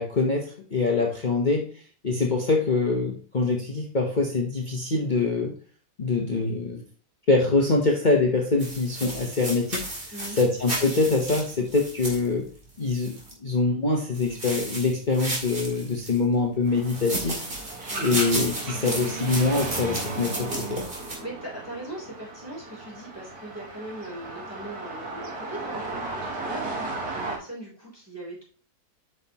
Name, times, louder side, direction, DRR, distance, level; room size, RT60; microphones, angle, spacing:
voice 1, 0.0-1.7 2.0-5.5 6.0-6.8 7.3-12.4 12.8-13.1 13.4-17.4 18.0-20.8, left 3 dB, 35° left, 0 dB, 1.0 m, -24 dB
sound 1, 8.6-13.3 14.1-16.2 16.8-21.2, right 1 dB, 35° right, 2.3 m, -34 dB
sound 2, 16.7-27.4, right 3 dB, 75° right, 2.2 m, -36 dB
voice 2, 21.2-28.4, right 1 dB, 10° right, -4 dB, 3.5 m, -40 dB
8.2 x 5.7 x 3.0 m, 0.41 s
omnidirectional pair, 1.7 m